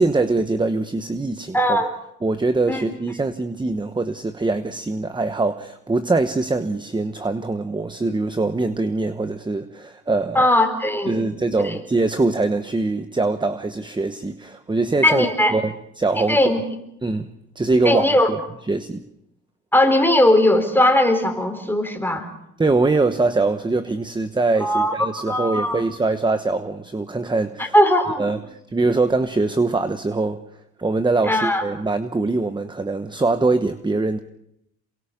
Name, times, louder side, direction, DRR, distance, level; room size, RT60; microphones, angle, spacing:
voice 1, 0.0-1.8 2.2-10.4 11.1-15.3 15.5-16.4 17.0-17.3 17.6-18.4 18.7-19.0 22.6-27.7 28.2-30.4 30.8-34.2, right 3 dB, 15° right, 10 dB, 1.1 m, -23 dB
voice 2, 1.5-1.9 2.7-2.8 10.3-11.2 11.6-11.8 15.0-15.5 16.2-16.6 17.8-18.3 19.7-22.3 24.6-25.8 27.6-28.3 31.2-31.6, left 1 dB, 5° left, 5 dB, 4.0 m, -19 dB
27.5 x 23.0 x 5.3 m, 0.78 s
cardioid pair, 90°, 30 cm